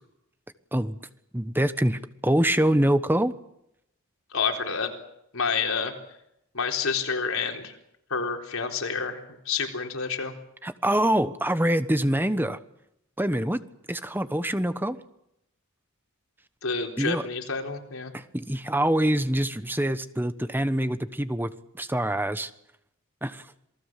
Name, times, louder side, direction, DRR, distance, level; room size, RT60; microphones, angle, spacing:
voice 1, 1.3-3.4 10.6-12.6 13.2-13.6 13.9-15.0 17.0-17.2 18.1-21.5 21.8-22.5 23.2-23.5, right 1 dB, 10° right, 11 dB, 1.2 m, -25 dB
voice 2, 4.3-4.9 5.3-5.9 6.5-7.7 8.1-9.2 9.5-10.3 16.6-18.1, left 5 dB, 85° left, 3 dB, 4.1 m, -28 dB
27.5 x 19.5 x 7.6 m, 0.79 s
head